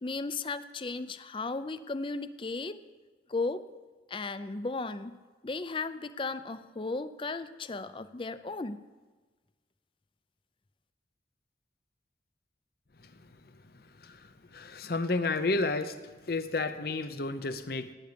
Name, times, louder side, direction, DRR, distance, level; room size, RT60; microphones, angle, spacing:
voice 1, 0.0-2.8 3.3-3.7 4.1-5.2 5.4-8.8, left 3 dB, 30° left, 13 dB, 0.5 m, -35 dB
voice 2, 14.0-16.0 16.2-17.9, left 3 dB, 55° left, 11 dB, 0.8 m, -31 dB
18.0 x 9.5 x 5.2 m, 1.3 s
head